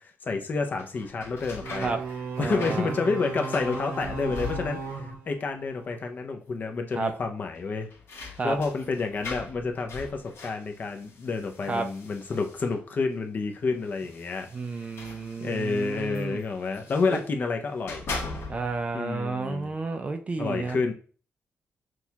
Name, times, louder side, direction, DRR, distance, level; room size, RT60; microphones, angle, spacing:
voice 1, 0.0-2.0 2.4-7.9 8.2-14.5 15.4-18.1 18.9-19.8 20.4-20.9, left 4 dB, 40° left, 4 dB, 0.6 m, -29 dB
sound 1, 0.7-5.1 5.4-6.0 6.3-6.4 7.5-12.9 13.8-17.3 17.7-18.9, left 3 dB, 65° left, 1.1 m, -41 dB
sound 2, 1.6-6.1, right 4 dB, 85° right, 1.0 m, -36 dB
voice 2, 2.4-2.9 6.9-7.1 8.4-8.6 11.7-11.9 14.5-16.4 17.1-17.2 18.5-20.8, right 3 dB, 30° right, 6 dB, 0.4 m, -31 dB
6.1 x 2.3 x 2.8 m, 0.40 s
wide cardioid pair, 160°, 5 cm